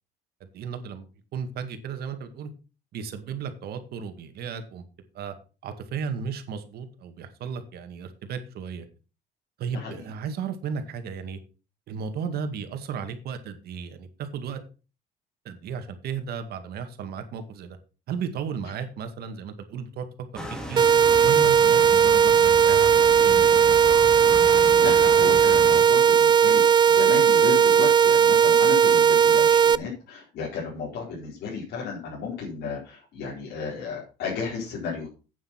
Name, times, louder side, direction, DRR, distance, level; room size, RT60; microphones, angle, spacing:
voice 1, 0.4-1.1 1.3-2.5 2.9-4.8 5.1-5.3 5.6-8.9 9.6-11.4 11.9-14.6 15.4-17.8 18.1-20.1 20.3-20.4 20.7-20.9 21.2-23.8, right 6 dB, 70° right, 8 dB, 2.1 m, -34 dB
voice 2, 9.7-10.1 24.8-35.1, left 5 dB, 70° left, -5 dB, 4.5 m, -34 dB
sound 1, 20.3-25.8, equal, 5° left, 3.0 m, -35 dB
sound 2, 20.8-29.8, right 8 dB, 25° right, 0.4 m, -17 dB
8.7 x 7.7 x 5.8 m, 0.34 s
cardioid pair, 110°, 17 cm